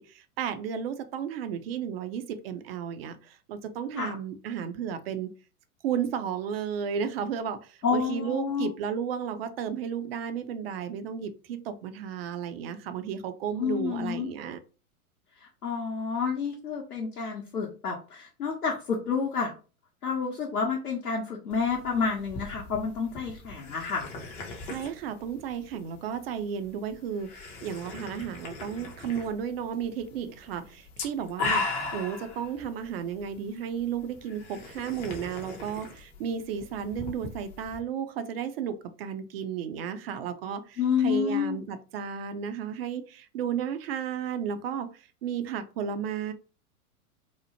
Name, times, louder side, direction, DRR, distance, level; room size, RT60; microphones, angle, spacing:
voice 1, 0.0-5.3 5.8-14.6 24.7-46.3, right 8 dB, 45° right, 10 dB, 0.4 m, -33 dB
voice 2, 7.8-8.7 13.6-14.3 15.4-19.5 20.0-24.1 40.8-41.6, left 6 dB, 85° left, -1 dB, 0.7 m, -29 dB
sound 1, 21.5-37.8, left 3 dB, 20° left, 0.4 m, -39 dB
2.9 x 2.0 x 2.7 m, 0.35 s
figure-of-eight pair, 100°, 44 cm